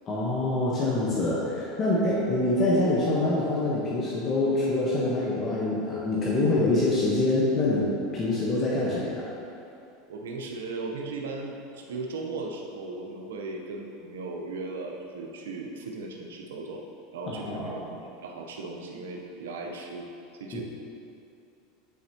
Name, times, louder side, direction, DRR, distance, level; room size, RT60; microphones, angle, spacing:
voice 1, 0.1-9.3 17.3-17.7 20.5-20.6, left 2 dB, 35° left, -6 dB, 1.1 m, -25 dB
voice 2, 10.1-16.8 17.1-20.6, right 3 dB, 90° right, 1 dB, 0.7 m, -37 dB
9.4 x 4.4 x 2.9 m, 2.6 s
supercardioid pair, 110°, 0 cm